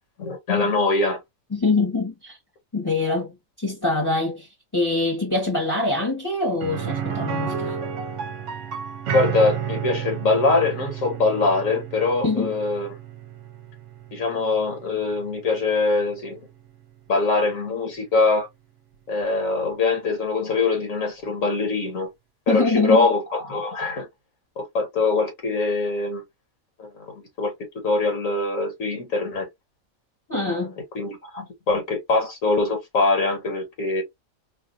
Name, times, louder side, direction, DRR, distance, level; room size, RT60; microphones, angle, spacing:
voice 1, 0.2-1.2 9.1-12.9 14.1-16.4 17.1-18.5 19.1-22.1 22.5-24.1 24.6-26.2 26.8-27.5 27.8-29.5 30.3-30.7 30.9-34.0, left 3 dB, 70° left, 1.6 m, -23 dB
voice 2, 1.5-2.4 2.7-7.8 12.2-12.6 22.5-23.1 30.3-30.8, left 3 dB, 15° left, 1.0 m, -24 dB
sound 1, 6.6-16.4 16.7-16.8 19.2-19.3, right 8 dB, 65° right, 0.9 m, -32 dB
4.1 x 2.4 x 2.6 m
omnidirectional pair, 1.5 m